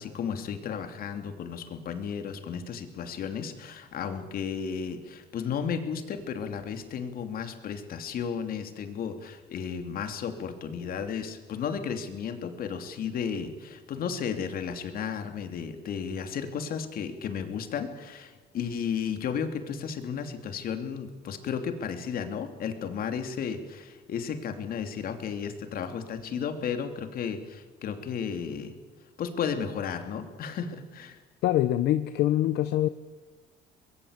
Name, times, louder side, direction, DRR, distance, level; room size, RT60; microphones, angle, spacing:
voice 1, 0.0-28.7 29.2-31.2, left 7 dB, 60° left, 7 dB, 2.9 m, -33 dB
voice 2, 31.4-32.9, left 13 dB, 80° left, 11 dB, 0.9 m, -24 dB
24.0 x 21.5 x 8.3 m, 1.4 s
cardioid pair, 110°, 17 cm